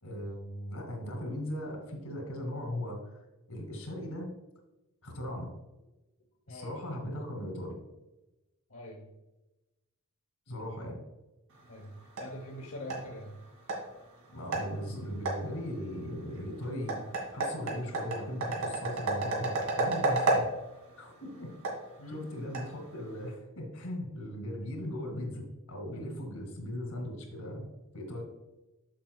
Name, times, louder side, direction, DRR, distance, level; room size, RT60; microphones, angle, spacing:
voice 1, 0.0-3.2 3.5-4.3 5.0-5.5 6.5-7.7 10.5-11.0 14.3-20.4 21.0-21.5 22.1-25.4 25.7-27.7 27.9-28.2, equal, 85° left, 2 dB, 2.3 m, -38 dB
voice 2, 6.5-6.8 8.7-9.0 11.7-11.9 12.2-13.4 22.0-22.3 25.9-26.1, left 1 dB, 65° left, -2 dB, 1.0 m, -43 dB
sound 1, 11.5-23.3, right 2 dB, 80° right, 2.0 m, -34 dB
7.5 x 7.1 x 2.4 m, 1.0 s
head